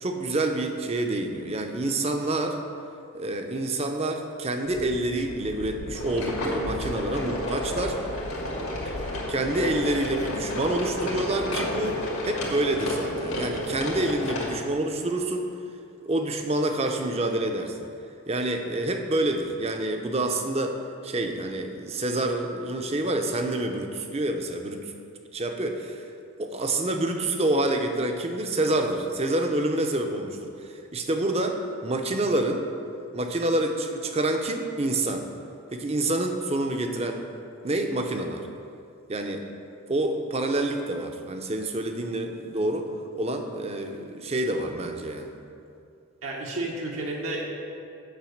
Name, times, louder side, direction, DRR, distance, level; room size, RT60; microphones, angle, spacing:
voice 1, 0.0-2.6 3.1-8.0 8.9-9.0 9.3-15.5 16.0-17.8 18.3-20.8 21.0-24.8 25.3-26.0 26.4-32.7 33.1-35.3 35.7-37.2 37.6-38.5 39.1-39.5 39.9-42.9 43.1-45.3, right 1 dB, 30° right, 5 dB, 0.6 m, -27 dB
sound 1, 4.6-14.6, left 3 dB, 45° left, 0.3 m, -41 dB
sound 2, 5.9-14.5, left 1 dB, 85° left, 1.9 m, -31 dB
voice 2, 46.2-47.5, right 2 dB, 75° right, -3 dB, 1.1 m, -31 dB
7.5 x 5.7 x 7.1 m, 2.5 s
head